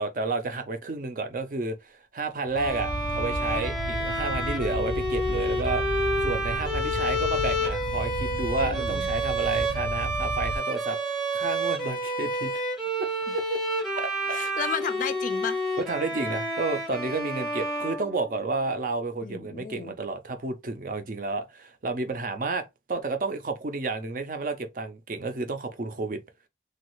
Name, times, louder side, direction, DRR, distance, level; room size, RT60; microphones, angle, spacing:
voice 1, 0.0-5.8 6.2-12.5 13.0-13.6 13.9-14.4 15.8-26.2, right 3 dB, 50° right, 0.5 m, -31 dB
Bowed string instrument, 2.5-18.6, equal, ahead, 0.7 m, -29 dB
sound 1, 2.5-10.6, right 1 dB, 85° right, 0.9 m, -33 dB
voice 2, 8.6-9.1 14.3-15.6 19.2-19.9, left 6 dB, 45° left, 0.3 m, -33 dB
3.1 x 2.3 x 3.0 m
head